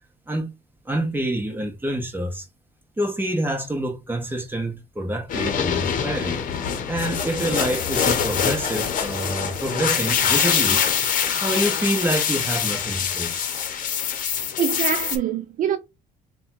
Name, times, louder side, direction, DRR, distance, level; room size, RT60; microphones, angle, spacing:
voice 1, 0.9-2.5 3.0-6.4 6.9-10.8 11.4-13.4, right 1 dB, 10° right, 1.1 m, -27 dB
sound 1, 5.3-15.2, left 8 dB, 50° left, 0.9 m, -24 dB
voice 2, 14.6-15.8, right 9 dB, 50° right, 0.4 m, -24 dB
3.5 x 2.3 x 4.4 m
cardioid pair, 110°, 17 cm